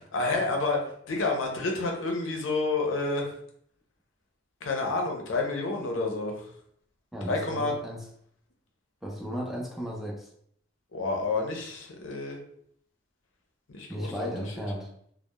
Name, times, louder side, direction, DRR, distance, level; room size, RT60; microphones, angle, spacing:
voice 1, 0.1-3.4 4.6-6.5 7.3-7.7 10.9-12.4 13.7-14.6, left 3 dB, 70° left, 1 dB, 0.5 m, -29 dB
voice 2, 7.1-8.0 9.0-10.3 13.9-14.9, equal, ahead, -3 dB, 0.3 m, -35 dB
2.2 x 2.0 x 2.8 m, 0.66 s
head